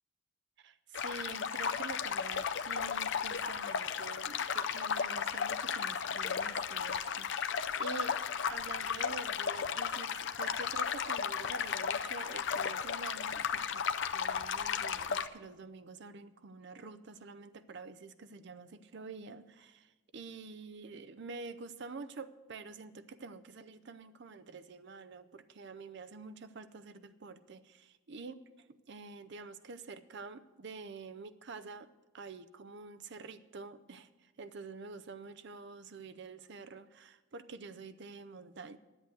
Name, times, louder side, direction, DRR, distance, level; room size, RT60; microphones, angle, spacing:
voice 1, 0.6-8.2 8.5-13.8 14.1-31.9 32.1-38.8, right 4 dB, 60° right, 12 dB, 0.6 m, -47 dB
sound 1, 0.9-15.3, left 7 dB, 60° left, 0.5 m, -34 dB
11.0 x 8.0 x 7.6 m, 1.2 s
head